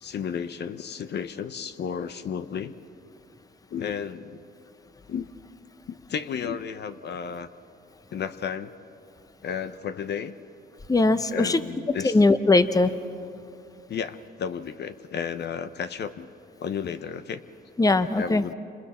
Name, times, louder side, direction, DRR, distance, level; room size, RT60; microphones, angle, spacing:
voice 1, 0.0-2.7 3.7-4.4 5.1-5.3 5.9-7.5 8.1-8.7 9.4-10.3 11.3-12.2 13.9-16.3 16.6-17.4 18.2-18.5, left 7 dB, 60° left, 11 dB, 0.8 m, -33 dB
voice 2, 10.9-11.6 12.0-12.9 17.8-18.4, left 2 dB, 20° left, 11 dB, 0.9 m, -20 dB
29.0 x 27.0 x 4.3 m, 2.6 s
cardioid pair, 90°, 20 cm